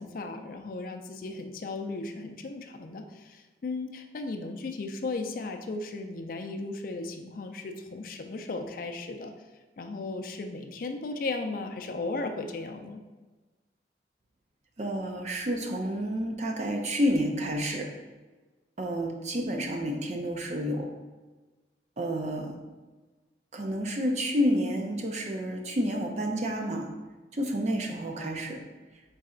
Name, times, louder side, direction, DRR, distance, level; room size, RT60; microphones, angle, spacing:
voice 1, 0.0-9.3 9.8-13.0, left 3 dB, 50° left, 5 dB, 0.4 m, -36 dB
voice 2, 14.8-17.9 18.8-20.9 22.0-22.6 23.5-26.9 27.3-28.6, equal, 40° right, 2 dB, 0.5 m, -29 dB
4.0 x 3.2 x 3.7 m, 1.2 s
head